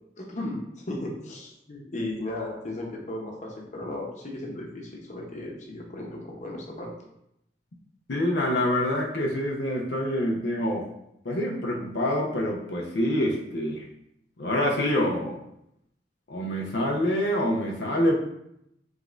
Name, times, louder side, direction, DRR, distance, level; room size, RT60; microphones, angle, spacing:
voice 1, 0.2-6.9, left 1 dB, 45° left, -1 dB, 0.9 m, -35 dB
voice 2, 8.1-10.8 11.2-13.9 14.4-15.4 16.3-18.2, left 1 dB, 80° left, -1 dB, 0.7 m, -26 dB
5.1 x 3.5 x 2.5 m, 0.79 s
head